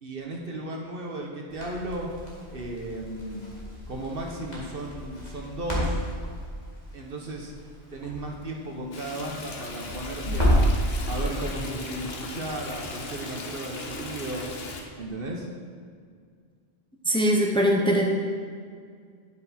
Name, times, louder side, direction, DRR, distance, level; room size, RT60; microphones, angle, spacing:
voice 1, 0.0-2.1 2.5-3.5 3.9-6.0 6.9-7.5 7.9-14.5 15.0-15.5, right 1 dB, 60° right, 0 dB, 1.4 m, -35 dB
Crackle, 1.5-10.8, equal, 40° left, 2.5 m, -30 dB
Stream, 8.9-14.8, left 2 dB, 65° left, 1.2 m, -38 dB
voice 2, 17.1-18.0, equal, 5° left, -1 dB, 1.0 m, -21 dB
9.4 x 8.3 x 4.3 m, 2.1 s
omnidirectional pair, 1.1 m